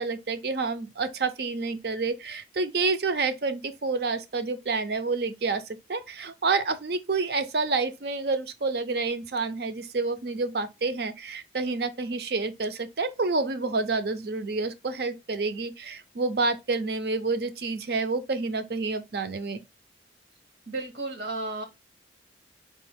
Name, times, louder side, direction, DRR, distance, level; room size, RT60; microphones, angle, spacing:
voice 1, 0.0-19.6, right 3 dB, 60° right, 0.6 m, -28 dB
voice 2, 20.7-21.6, right 2 dB, 75° right, 1.0 m, -33 dB
4.4 x 2.5 x 3.5 m
head